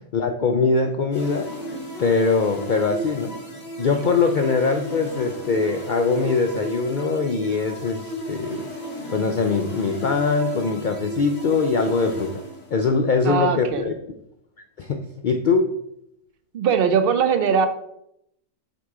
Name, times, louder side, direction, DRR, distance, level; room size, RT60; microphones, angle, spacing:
voice 1, 0.1-1.5 2.0-3.4 3.8-8.7 9.1-12.4 12.7-13.9 14.8-15.7, left 4 dB, 85° left, 5 dB, 0.4 m, -22 dB
sound 1, 1.1-13.0, right 1 dB, 50° left, 2.1 m, -34 dB
voice 2, 13.3-13.8 16.5-17.7, right 6 dB, 55° right, 8 dB, 0.7 m, -20 dB
8.0 x 3.0 x 4.6 m, 0.78 s
omnidirectional pair, 1.4 m